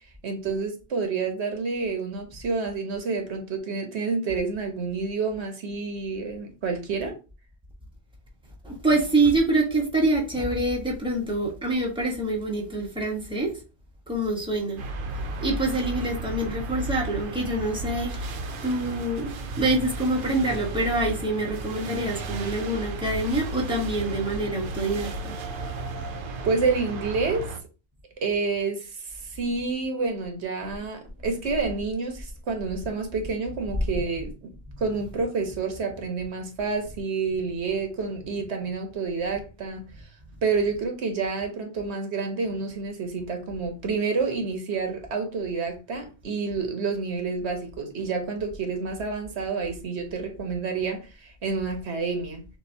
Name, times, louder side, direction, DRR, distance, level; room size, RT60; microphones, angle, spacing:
voice 1, 0.0-7.2 26.4-27.5 28.2-40.2 40.4-52.5, right 4 dB, 90° right, 1.2 m, -29 dB
voice 2, 8.6-13.5 14.1-14.8 15.4-19.3 19.6-25.3, right 2 dB, 5° right, 1.2 m, -26 dB
sound 1, 14.8-27.6, right 2 dB, 60° right, 0.8 m, -34 dB
6.3 x 2.7 x 2.7 m
omnidirectional pair, 1.1 m